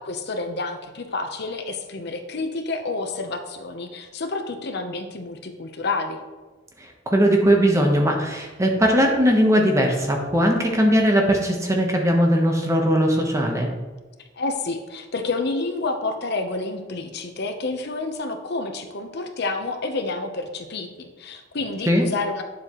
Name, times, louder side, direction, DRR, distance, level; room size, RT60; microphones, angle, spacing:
voice 1, 0.0-6.2 14.4-22.4, left 3 dB, 60° left, 5 dB, 0.8 m, -29 dB
voice 2, 7.1-13.7 21.9-22.0, equal, 15° right, 1 dB, 1.1 m, -19 dB
9.0 x 7.2 x 3.1 m, 1.2 s
head